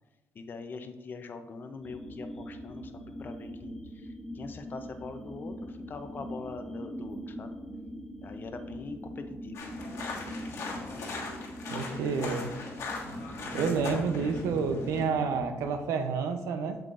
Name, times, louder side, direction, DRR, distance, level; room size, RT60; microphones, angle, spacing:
voice 1, 0.3-7.6 8.2-9.8 10.3-11.0 12.0-12.4, left 4 dB, 40° left, 8 dB, 0.6 m, -43 dB
sound 1, 1.8-15.7, equal, 5° left, 0.8 m, -42 dB
sound 2, 9.5-15.0, left 3 dB, 65° left, 1.6 m, -39 dB
voice 2, 11.7-12.5 13.5-16.8, right 5 dB, 80° right, 7 dB, 0.7 m, -29 dB
7.5 x 7.2 x 2.6 m, 1.1 s
cardioid pair, 115°, 5 cm